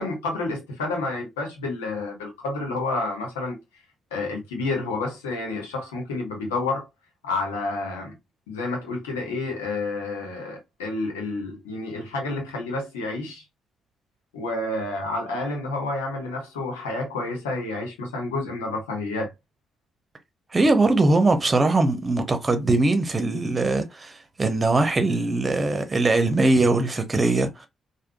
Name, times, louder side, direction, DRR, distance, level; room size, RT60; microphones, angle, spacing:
voice 1, 0.0-3.6 4.1-6.9 7.2-8.1 8.5-13.4 14.3-19.3, left 2 dB, 85° left, 1.0 m, -29 dB
voice 2, 20.5-24.1 24.4-27.7, right 2 dB, 35° right, 0.9 m, -21 dB
3.5 x 2.3 x 2.3 m
hypercardioid pair, 40°, 0 cm